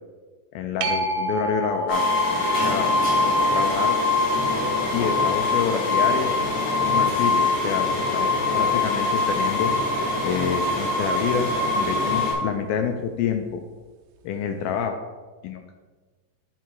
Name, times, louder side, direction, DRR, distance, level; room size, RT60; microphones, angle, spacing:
voice 1, 0.6-2.0 2.6-2.9 3.5-3.9 4.9-6.3 6.8-7.9 8.1-8.3 8.5-9.7 10.2-11.5 11.7-13.6 14.2-15.0 15.4-15.7, left 7 dB, 85° left, 5 dB, 2.1 m, -27 dB
sound 1, 0.8-8.0 13.5-13.6, right 1 dB, 85° right, 2.8 m, -33 dB
sound 2, 1.9-12.3, left 3 dB, 40° left, 3.1 m, -23 dB
11.0 x 4.7 x 4.6 m, 1.3 s
omnidirectional pair, 4.8 m